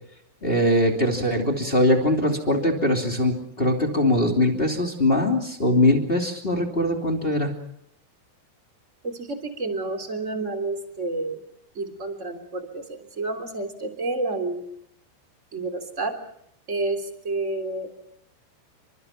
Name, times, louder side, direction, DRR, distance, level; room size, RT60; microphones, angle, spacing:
voice 1, 0.4-7.5, left 1 dB, 15° left, 2 dB, 1.9 m, -22 dB
voice 2, 9.0-11.4 11.7-14.6 15.5-16.1 16.7-18.0, right 2 dB, 20° right, 6 dB, 2.9 m, -30 dB
29.0 x 25.5 x 5.9 m, 0.75 s
omnidirectional pair, 5.6 m